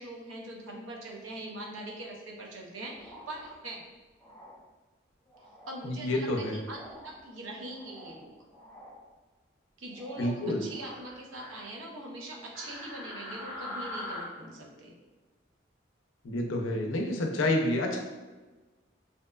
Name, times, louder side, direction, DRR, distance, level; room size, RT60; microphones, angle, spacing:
voice 1, 0.0-3.8 5.7-8.3 9.8-14.9, right 1 dB, 85° right, 0 dB, 0.5 m, -42 dB
sound 1, 2.9-3.5 4.2-4.5 5.3-5.8 6.7-7.1 7.6-8.2 8.5-8.9 9.9-10.3 10.7-11.6 12.5-14.2, left 1 dB, 5° left, 1.0 m, -44 dB
voice 2, 5.8-6.6 10.2-10.6 16.2-18.1, left 1 dB, 85° left, 2 dB, 0.4 m, -29 dB
2.7 x 2.2 x 2.2 m, 1.2 s
head